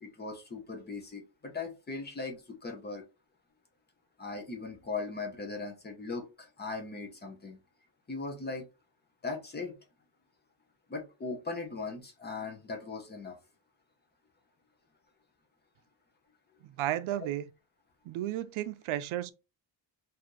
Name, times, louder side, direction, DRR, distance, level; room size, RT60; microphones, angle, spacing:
voice 1, 0.0-3.0 4.2-7.6 8.1-8.7 9.2-9.8 10.9-13.4, left 3 dB, 20° left, 0.7 m, -39 dB
voice 2, 16.6-17.4 18.1-19.3, right 13 dB, 85° right, 0.6 m, -33 dB
4.1 x 2.7 x 3.0 m
cardioid pair, 170°, 48 cm